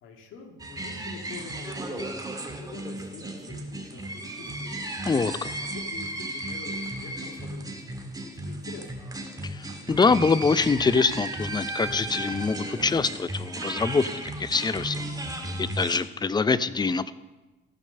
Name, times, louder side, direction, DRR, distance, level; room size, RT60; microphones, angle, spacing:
voice 1, 0.0-5.0 5.6-8.9, left 4 dB, 85° left, 2 dB, 1.9 m, -45 dB
sound 1, 0.6-16.0, right 1 dB, 20° right, 1.8 m, -35 dB
voice 2, 5.1-5.5 9.4-15.0 15.3-17.1, left 4 dB, 20° left, 15 dB, 0.5 m, -25 dB
15.0 x 5.2 x 6.7 m, 1.1 s
cardioid pair, 90°, 20 cm